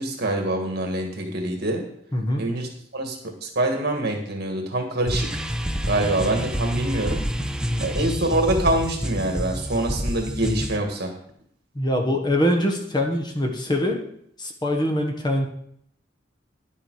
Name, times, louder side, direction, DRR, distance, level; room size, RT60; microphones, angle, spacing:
voice 1, 0.0-1.9 2.4-5.4 5.9-7.2 7.8-11.1, right 1 dB, 60° right, 3 dB, 1.9 m, -25 dB
voice 2, 2.1-2.5 7.7-7.8 11.7-14.0 14.4-15.5, left 1 dB, 25° left, 3 dB, 1.3 m, -23 dB
sound 1, 5.1-10.8, equal, 5° right, 0.5 m, -28 dB
10.5 x 6.9 x 4.8 m, 0.67 s
head